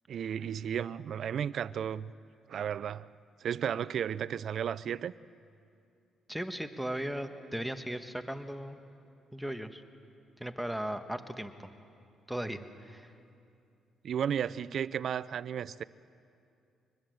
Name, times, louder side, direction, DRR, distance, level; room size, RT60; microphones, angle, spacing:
voice 1, 0.1-2.1 2.5-3.1 3.4-5.1 14.0-15.8, right 8 dB, 60° right, 0.5 m, -33 dB
voice 2, 6.3-8.8 9.3-9.8 10.4-11.7 12.3-13.1, right 1 dB, ahead, 1.4 m, -37 dB
23.5 x 20.5 x 7.9 m
cardioid pair, 90°, 0 cm